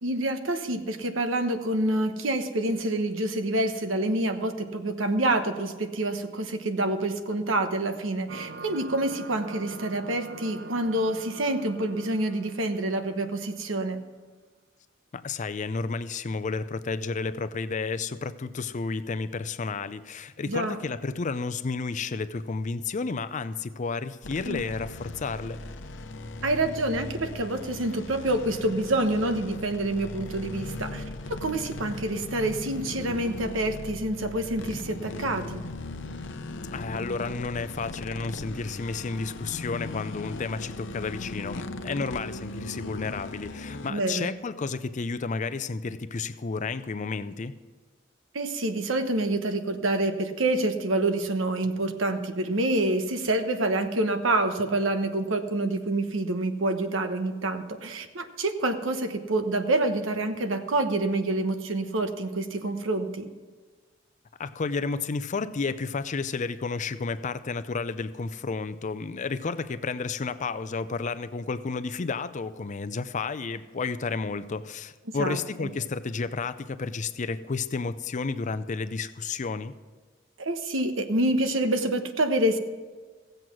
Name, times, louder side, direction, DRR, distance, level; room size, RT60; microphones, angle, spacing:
voice 1, 0.0-14.0 20.5-20.8 24.4-24.6 26.4-35.6 43.9-44.3 48.3-63.3 75.1-75.7 80.4-82.6, right 2 dB, 85° right, 7 dB, 1.0 m, -27 dB
sound 1, 8.3-13.5, right 3 dB, 55° right, 0.6 m, -44 dB
voice 2, 15.1-25.6 36.7-47.6 64.4-79.7, left 4 dB, 40° left, 13 dB, 0.5 m, -31 dB
sound 2, 24.2-43.9, left 2 dB, 65° left, 0.8 m, -38 dB
16.0 x 7.8 x 6.1 m, 1.4 s
head